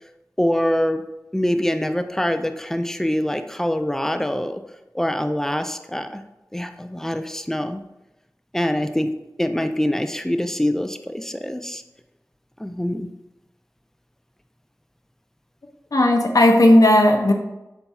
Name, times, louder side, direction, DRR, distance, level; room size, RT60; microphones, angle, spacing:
voice 1, 0.4-1.0 1.3-4.6 4.9-6.2 6.5-7.8 8.5-9.1 9.4-11.8 12.6-13.1, left 1 dB, 5° left, 8 dB, 0.3 m, -24 dB
voice 2, 15.9-17.3, left 1 dB, 70° left, 3 dB, 0.5 m, -14 dB
4.1 x 4.0 x 2.3 m, 0.95 s
wide cardioid pair, 40°, 6 cm